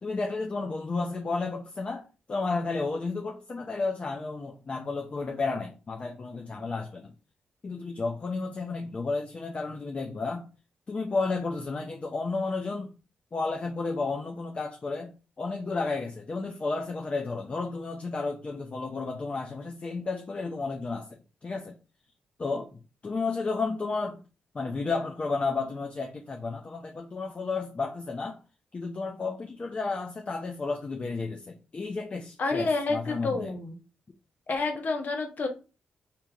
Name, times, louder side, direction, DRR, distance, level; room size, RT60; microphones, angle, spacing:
voice 1, 0.0-7.1 7.6-10.5 10.9-13.0 13.3-21.8 22.4-24.2 24.5-28.4 28.7-33.5, left 3 dB, 35° left, 0.5 m, -32 dB
voice 2, 32.4-33.8 34.5-35.5, left 3 dB, 55° left, 1.0 m, -29 dB
5.2 x 2.8 x 2.4 m
cardioid pair, 75°, 3 cm